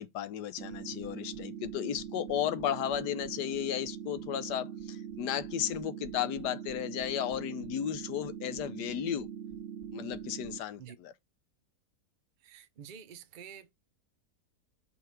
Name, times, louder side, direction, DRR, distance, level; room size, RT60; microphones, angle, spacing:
voice 1, 0.0-9.3 9.9-11.1, left 10 dB, 85° left, 1.3 m, -34 dB
sound 1, 0.6-10.6, right 8 dB, 50° right, 1.1 m, -42 dB
sound 2, 0.7-10.5, right 7 dB, 25° right, 0.7 m, -57 dB
voice 2, 12.4-13.7, right 8 dB, 75° right, 0.4 m, -49 dB
5.6 x 4.1 x 4.4 m
omnidirectional pair, 1.8 m